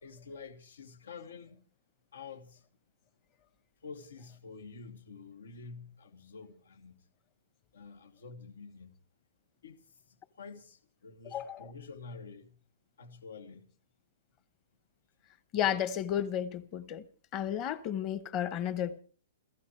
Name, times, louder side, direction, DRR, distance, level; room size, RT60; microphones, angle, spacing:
voice 1, 0.0-1.6 2.1-2.6 3.8-7.0 7.7-9.0 9.6-9.8 10.1-12.6 13.0-13.7, left 4 dB, 90° left, 2.6 m, -48 dB
voice 2, 11.3-11.7 15.5-17.0 17.3-19.0, left 10 dB, 20° left, 0.9 m, -32 dB
29.0 x 15.0 x 3.2 m
hypercardioid pair, 175°, 0 cm